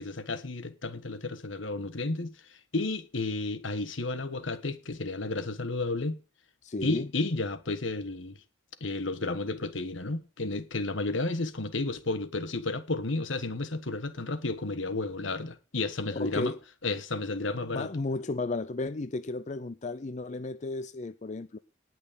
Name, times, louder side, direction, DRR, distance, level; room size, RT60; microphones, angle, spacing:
voice 1, 0.0-6.2 6.8-8.4 8.8-16.5 16.8-17.9, left 2 dB, 75° left, 1.4 m, -32 dB
voice 2, 6.6-7.1 16.1-16.6 17.6-21.6, left 2 dB, 35° left, 0.5 m, -33 dB
19.0 x 6.4 x 5.2 m
head